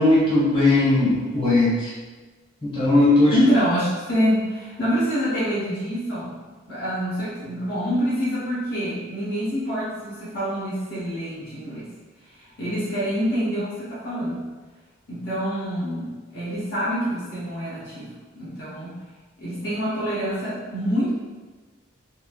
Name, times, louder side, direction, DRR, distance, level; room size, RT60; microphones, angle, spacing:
voice 1, 0.0-1.9 2.6-3.3, left 2 dB, 25° left, -9 dB, 1.0 m, -18 dB
voice 2, 3.3-6.3 6.7-11.9 12.4-14.4 15.1-19.0 19.4-21.1, equal, 50° left, -10 dB, 0.7 m, -26 dB
2.9 x 2.5 x 2.3 m, 1.3 s
head